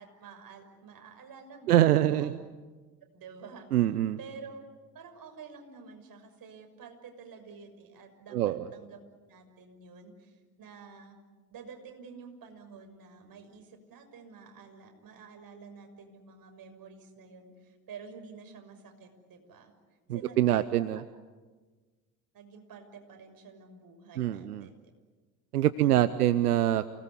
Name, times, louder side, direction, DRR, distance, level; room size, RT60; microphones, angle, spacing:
voice 1, 0.0-2.4 3.1-3.7 4.2-4.6 4.9-9.0 9.3-11.2 11.5-19.7 20.1-20.8 22.3-24.9 25.8-26.3, right 5 dB, 50° right, 5 dB, 6.4 m, -49 dB
voice 2, 1.7-2.4 3.7-4.2 8.3-8.7 20.1-21.0 24.2-24.7 25.5-26.9, right 13 dB, 90° right, 15 dB, 0.8 m, -25 dB
29.0 x 20.0 x 9.9 m, 1.3 s
hypercardioid pair, 60°, 44 cm